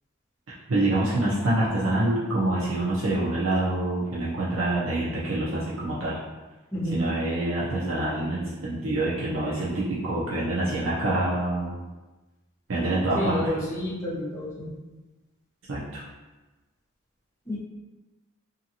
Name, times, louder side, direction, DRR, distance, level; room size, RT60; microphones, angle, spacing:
voice 1, 0.7-6.2 6.9-11.7 12.7-13.4 15.7-16.0, right 2 dB, 70° right, -7 dB, 0.6 m, -26 dB
voice 2, 6.7-7.1 13.1-14.7 17.5-17.6, left 1 dB, 15° left, -9 dB, 0.8 m, -30 dB
2.6 x 2.4 x 2.7 m, 1.2 s
head